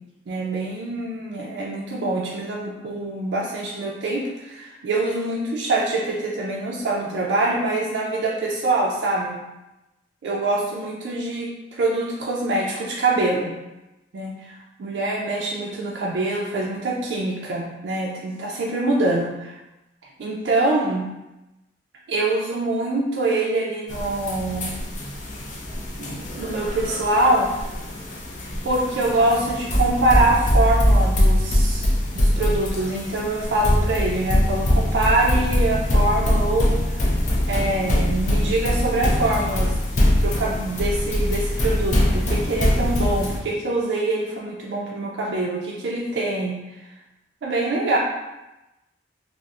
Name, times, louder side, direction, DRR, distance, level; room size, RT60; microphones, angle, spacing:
voice 1, 0.3-9.4 10.2-13.5 14.1-19.6 20.2-21.1 22.1-24.7 26.0-27.7 28.6-37.1 37.5-39.7 40.2-46.6 47.4-48.0, right 2 dB, 70° right, -3 dB, 0.4 m, -24 dB
sound 1, 23.9-43.4, left 1 dB, 40° left, 0.5 m, -22 dB
4.0 x 2.0 x 2.4 m, 0.98 s
head